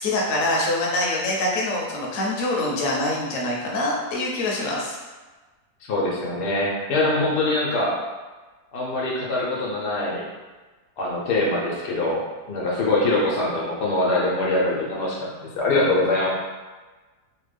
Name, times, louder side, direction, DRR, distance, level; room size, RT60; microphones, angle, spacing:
voice 1, 0.0-5.0, left 1 dB, 60° left, -3 dB, 0.9 m, -25 dB
voice 2, 5.9-8.0 8.7-10.2 11.0-12.2 12.5-16.3, left 2 dB, 85° left, -4 dB, 1.3 m, -23 dB
3.4 x 2.2 x 3.3 m, 1.3 s
omnidirectional pair, 1.7 m